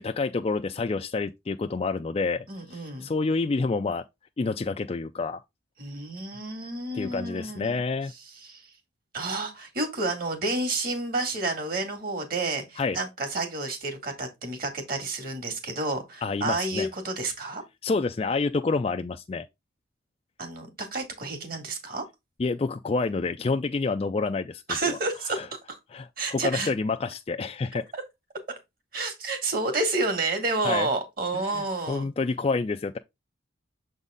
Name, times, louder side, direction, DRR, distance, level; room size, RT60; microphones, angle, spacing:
voice 1, 0.0-4.0 4.4-5.4 6.9-8.1 12.8-13.0 16.2-16.9 17.8-19.5 22.4-25.0 25.4-25.5 25.9-27.8 30.6-30.9 31.3-33.0, left 3 dB, 30° left, 0.3 m, -28 dB
voice 2, 2.5-3.1 5.8-7.8 8.3-8.7 9.1-17.6 20.4-22.0 24.7-25.8 26.2-26.7 27.9-28.0 28.9-32.1, right 2 dB, 45° right, 2.1 m, -30 dB
7.1 x 4.0 x 3.6 m
head